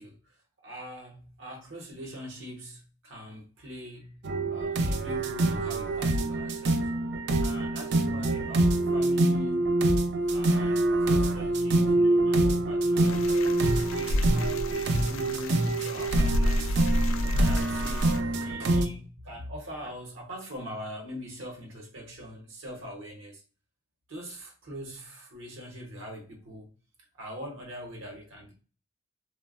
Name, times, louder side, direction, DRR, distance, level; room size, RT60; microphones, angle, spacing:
voice 1, 0.0-4.2 4.5-6.9 7.4-9.8 10.3-13.2 13.9-16.9 17.3-23.4 24.1-26.7 27.1-28.5, equal, 75° right, 0.7 m, -42 dB
sound 1, 4.2-18.9, right 2 dB, 60° right, 0.3 m, -26 dB
sound 2, 13.0-18.2, equal, 80° left, 0.3 m, -29 dB
3.2 x 2.0 x 2.3 m
head